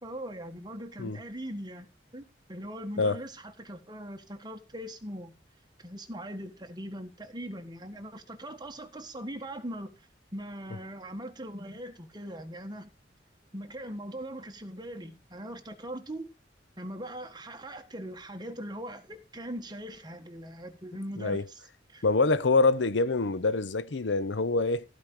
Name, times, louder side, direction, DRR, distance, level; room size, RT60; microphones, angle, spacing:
voice 1, 0.0-1.9 2.1-5.3 5.8-12.9 13.5-16.2 16.8-21.6 21.9-22.0, right 1 dB, 25° right, 1.5 m, -40 dB
voice 2, 22.0-24.8, left 3 dB, 90° left, 0.8 m, -25 dB
15.5 x 5.1 x 6.2 m
head